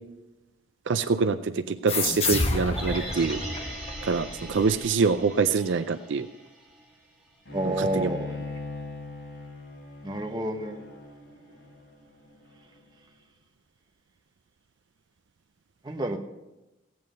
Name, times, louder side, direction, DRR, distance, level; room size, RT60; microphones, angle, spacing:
voice 1, 0.9-3.4 4.0-6.3 7.6-8.1, right 5 dB, 65° right, 11 dB, 0.4 m, -25 dB
sound 1, 1.9-5.1, left 3 dB, 30° left, 1.0 m, -30 dB
sound 2, 2.7-6.9 7.3-7.4, right 1 dB, 5° right, 2.2 m, -40 dB
Bowed string instrument, 7.5-12.8, left 3 dB, 75° left, 4.9 m, -40 dB
voice 2, 7.5-8.4 10.0-10.8 15.8-16.2, right 1 dB, 20° right, 3 dB, 1.1 m, -29 dB
15.5 x 9.5 x 5.2 m, 1.0 s
head